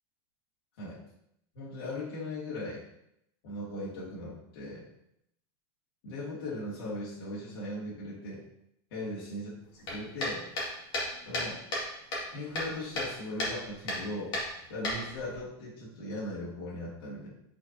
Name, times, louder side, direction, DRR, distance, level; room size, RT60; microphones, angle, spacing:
voice 1, 1.5-2.8 3.4-4.9 6.0-8.4 8.9-10.5 11.3-11.6 12.3-14.3 14.7-17.3, left 1 dB, 70° left, -6 dB, 2.4 m, -38 dB
sound 1, 9.8-11.9 12.1-13.1 13.4-13.6 13.9-14.0 14.3-15.4, left 1 dB, 35° left, 2.2 m, -33 dB
8.4 x 4.5 x 2.9 m, 0.78 s
supercardioid pair, 160°, 13 cm